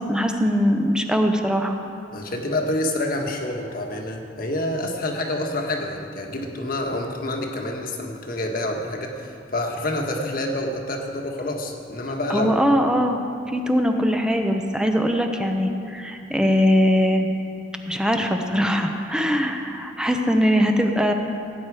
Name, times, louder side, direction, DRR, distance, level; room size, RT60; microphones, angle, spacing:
voice 1, 0.1-1.8 12.3-13.2 13.5-17.3 17.9-21.1, equal, 5° right, 4 dB, 0.8 m, -21 dB
voice 2, 2.1-12.6, left 1 dB, 55° left, 2 dB, 1.5 m, -27 dB
17.0 x 9.2 x 4.9 m, 2.5 s
head